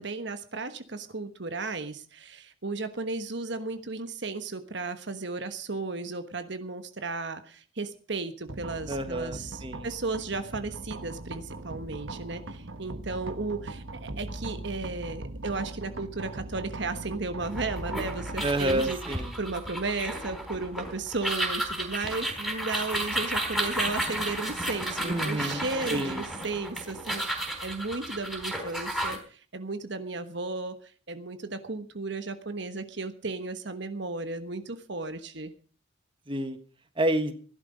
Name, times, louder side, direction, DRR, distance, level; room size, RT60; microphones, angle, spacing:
voice 1, 0.0-19.0 19.4-30.7 31.1-35.5, right 3 dB, 55° right, 9 dB, 1.3 m, -34 dB
sound 1, 8.5-22.3, right 2 dB, 75° right, 1.3 m, -41 dB
voice 2, 8.9-9.9 18.4-19.3 25.0-25.6 25.9-26.2 36.3-36.6 37.0-37.3, right 1 dB, 25° right, 8 dB, 1.4 m, -29 dB
sound 2, 17.4-29.2, right 1 dB, ahead, 4.0 m, -33 dB
17.0 x 11.5 x 5.1 m, 0.42 s
head